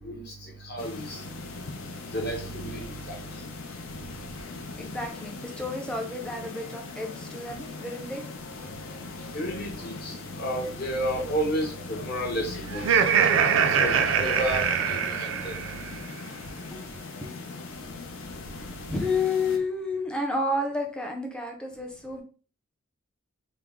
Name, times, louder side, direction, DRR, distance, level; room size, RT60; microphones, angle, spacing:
voice 1, 0.6-1.2 2.1-3.2 9.3-13.0 13.8-15.6, right 1 dB, 45° left, 0 dB, 0.9 m, -31 dB
sound 1, 0.8-19.6, left 3 dB, 65° left, 0.5 m, -40 dB
voice 2, 4.7-8.3 16.7-17.3 18.9-22.2, left 3 dB, 5° left, 2 dB, 0.4 m, -31 dB
Laughter, 12.7-15.9, right 7 dB, 60° right, 0.3 m, -23 dB
3.3 x 2.0 x 3.5 m, 0.39 s
head